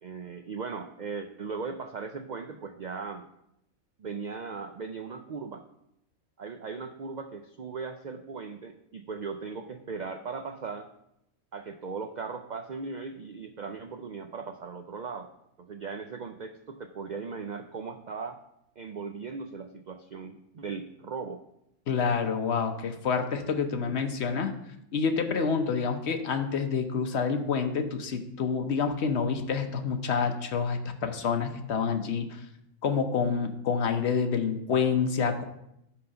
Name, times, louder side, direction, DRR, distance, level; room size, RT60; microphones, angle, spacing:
voice 1, 0.0-3.3 4.0-5.6 6.4-10.9 11.5-15.3 15.6-18.4 18.8-21.4, right 5 dB, 85° right, 7 dB, 0.4 m, -38 dB
voice 2, 21.9-24.5 24.9-32.4 32.8-35.4, left 5 dB, 55° left, 7 dB, 1.0 m, -28 dB
5.8 x 5.6 x 6.7 m, 0.79 s
omnidirectional pair, 1.4 m